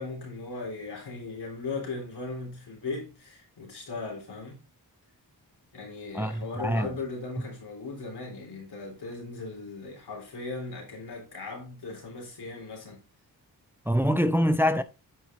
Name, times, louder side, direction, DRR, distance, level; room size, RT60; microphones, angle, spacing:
voice 1, 0.0-4.6 5.7-13.0, left 3 dB, 80° left, 3.7 m, -38 dB
voice 2, 6.1-6.9 13.9-14.8, equal, 5° right, 0.6 m, -24 dB
9.2 x 5.0 x 3.6 m
cardioid pair, 60°, 39 cm